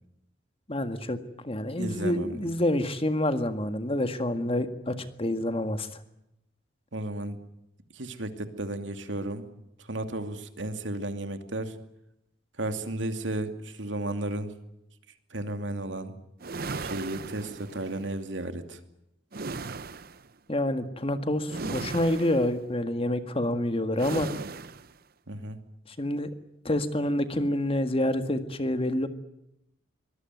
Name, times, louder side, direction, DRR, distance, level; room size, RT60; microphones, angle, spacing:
voice 1, 0.7-1.2 1.4-6.0 20.5-24.3 25.9-26.3 26.7-29.1, left 1 dB, 30° left, 9 dB, 1.8 m, -27 dB
voice 2, 1.8-2.3 6.9-7.4 7.9-9.5 9.9-11.7 12.6-14.5 15.3-16.2 16.8-18.8 25.3-25.6, right 1 dB, 85° right, 8 dB, 2.5 m, -33 dB
sound 1, 16.4-18.0 19.3-20.3 21.5-22.6 24.0-24.9, right 3 dB, 55° right, 0.9 m, -37 dB
24.5 x 19.5 x 9.3 m, 0.81 s
head